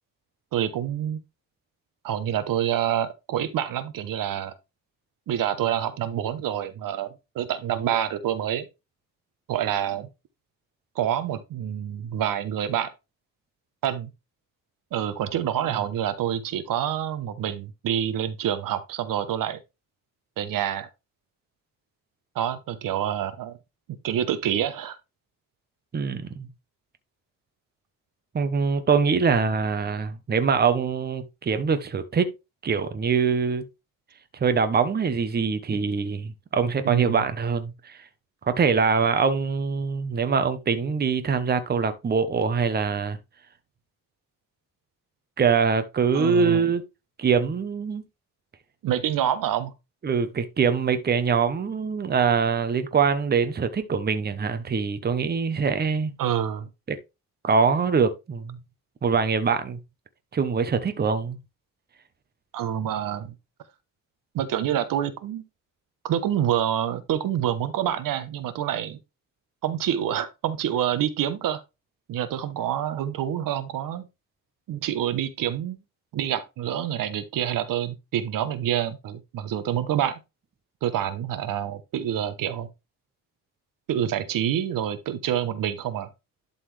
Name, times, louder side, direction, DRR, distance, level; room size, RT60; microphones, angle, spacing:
voice 1, 0.5-1.2 2.0-4.5 5.3-8.7 9.5-10.1 11.0-12.9 13.8-14.1 14.9-19.6 20.4-20.9 22.3-23.6 24.0-25.0 36.8-37.2 46.1-46.7 48.8-49.7 56.2-56.7 62.5-63.3 64.3-65.4 66.0-69.0 69.6-71.6 72.1-74.1 74.7-75.8 76.1-80.2 80.8-82.7 83.9-86.1, right 10 dB, 75° right, 1.0 m, -27 dB
voice 2, 25.9-26.5 28.3-32.3 32.6-33.6 34.4-38.0 38.5-43.2 45.4-46.8 47.2-48.0 50.0-56.1 56.9-57.0 57.4-58.6 59.0-59.8 60.3-61.4, right 5 dB, 30° right, 0.9 m, -23 dB
11.5 x 4.1 x 3.3 m
cardioid pair, 125°, 34 cm